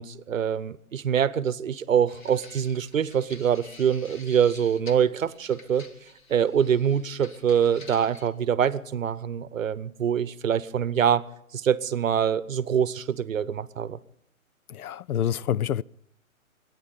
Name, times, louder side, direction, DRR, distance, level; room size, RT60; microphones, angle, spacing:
voice 1, 0.0-5.9 6.3-11.2 11.5-14.0, right 8 dB, 65° right, 0.8 m, -24 dB
sound 1, 2.1-8.3, left 3 dB, 35° left, 1.4 m, -49 dB
voice 2, 14.7-15.8, left 10 dB, 85° left, 0.5 m, -27 dB
23.5 x 9.8 x 5.2 m
hypercardioid pair, 160°, 43 cm